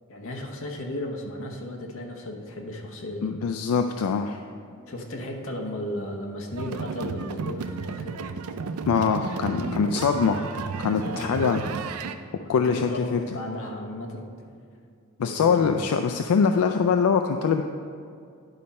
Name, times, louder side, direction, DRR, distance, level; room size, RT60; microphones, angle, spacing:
voice 1, 0.1-3.3 4.9-8.2 9.6-10.5 11.0-11.8 12.4-14.3 15.2-15.7, left 1 dB, 65° left, 1 dB, 1.0 m, -35 dB
voice 2, 3.2-4.4 8.9-10.5 10.8-11.6 12.5-13.2 15.2-17.6, left 6 dB, 85° left, 6 dB, 0.4 m, -23 dB
sound 1, 6.5-12.2, right 5 dB, 80° right, 0.4 m, -33 dB
10.5 x 4.2 x 5.3 m, 2.4 s
head